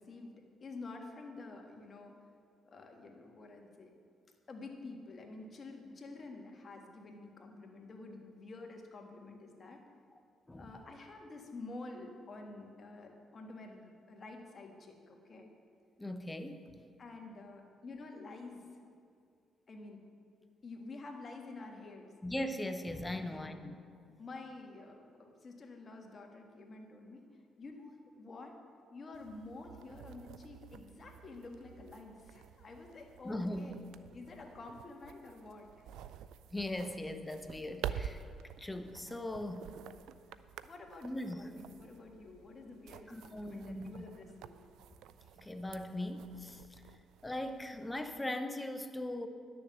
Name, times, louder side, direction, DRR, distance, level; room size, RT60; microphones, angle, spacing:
voice 1, 0.0-2.1 2.7-3.9 4.5-9.8 10.6-15.5 17.0-18.8 19.7-20.0 20.6-22.1 23.2-23.6 24.2-27.3 27.6-28.6 28.9-33.8 34.1-35.8 40.6-44.6, left 3 dB, 40° left, 2 dB, 1.7 m, -49 dB
voice 2, 16.0-16.6 22.2-23.7 33.2-33.7 36.5-38.2 38.6-39.7 41.0-41.5 43.1-43.9 45.4-46.8 47.2-49.3, left 1 dB, 15° left, 8 dB, 0.8 m, -39 dB
sound 1, 29.1-48.2, right 9 dB, 85° right, 0.4 m, -49 dB
11.0 x 7.0 x 7.3 m, 2.3 s
cardioid pair, 90°, 0 cm